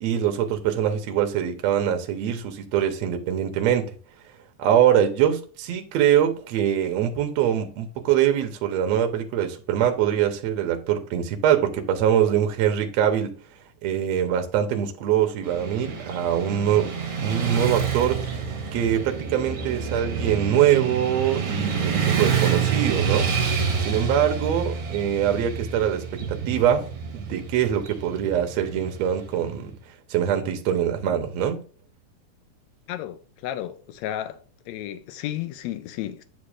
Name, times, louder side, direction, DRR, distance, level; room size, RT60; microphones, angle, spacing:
voice 1, 0.0-3.9 4.6-13.4 13.8-18.2 18.7-23.3 23.9-26.9 27.1-29.8 30.1-31.6, right 10 dB, 70° right, 1.8 m, -23 dB
Motorcycle / Traffic noise roadway noise, 15.4-29.5, right 6 dB, 50° right, 2.0 m, -28 dB
voice 2, 32.9-34.4 34.7-36.2, left 12 dB, 80° left, 1.6 m, -33 dB
9.5 x 6.7 x 2.5 m
omnidirectional pair, 3.8 m